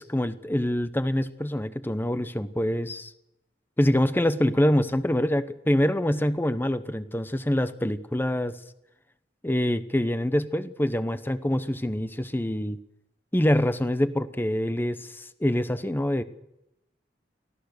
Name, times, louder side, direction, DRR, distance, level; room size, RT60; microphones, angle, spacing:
voice 1, 0.0-3.1 3.8-8.6 9.4-12.8 13.3-16.2, left 1 dB, 10° left, 12 dB, 0.9 m, -25 dB
24.0 x 17.0 x 6.6 m, 0.87 s
head